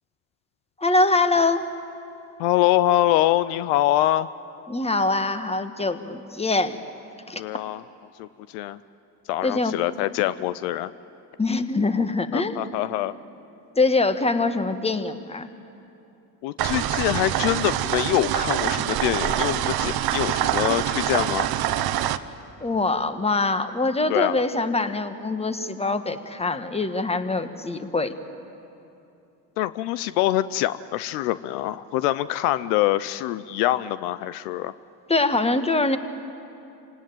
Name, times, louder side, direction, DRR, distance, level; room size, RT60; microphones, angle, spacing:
voice 1, 0.8-1.7 4.7-6.8 7.3-7.4 9.4-9.7 11.4-12.6 13.8-15.5 22.6-28.1 35.1-36.0, left 3 dB, 15° left, 10 dB, 1.5 m, -23 dB
voice 2, 2.4-4.3 7.4-7.8 8.2-8.3 8.5-8.8 9.3-10.9 12.3-13.1 16.4-21.5 24.1-24.4 29.6-34.7, left 14 dB, 75° left, 16 dB, 0.7 m, -24 dB
sound 1, 16.6-22.2, right 11 dB, 50° right, 1.0 m, -25 dB
27.5 x 18.0 x 9.2 m, 2.8 s
hypercardioid pair, 65°, 47 cm